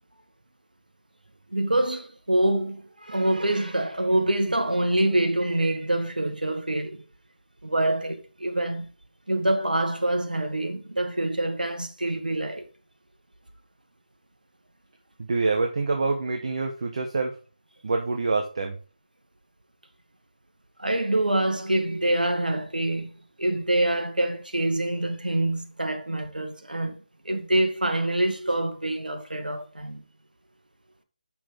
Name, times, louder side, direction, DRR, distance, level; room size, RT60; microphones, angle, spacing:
voice 1, 1.5-7.0 7.6-8.9 9.3-12.7 20.8-23.1 23.4-26.9 27.2-30.0, right 1 dB, 90° right, 1.6 m, -25 dB
voice 2, 15.2-17.4 17.8-18.8, right 3 dB, 50° right, 1.2 m, -26 dB
6.2 x 6.1 x 5.1 m
figure-of-eight pair, 160°, 5 cm